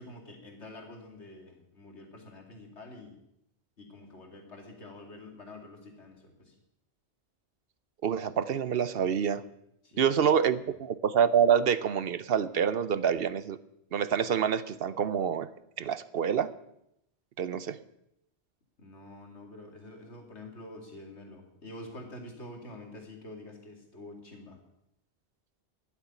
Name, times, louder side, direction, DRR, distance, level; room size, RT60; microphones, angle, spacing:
voice 1, 0.0-3.2 3.8-6.5 9.8-10.3 10.6-10.8 18.8-24.6, left 1 dB, 90° left, 2 dB, 2.8 m, -47 dB
voice 2, 8.0-9.4 10.0-13.6 13.9-15.5 15.8-16.5 17.4-17.8, right 8 dB, 65° right, 15 dB, 0.8 m, -27 dB
13.0 x 7.4 x 9.8 m, 0.80 s
omnidirectional pair, 1.1 m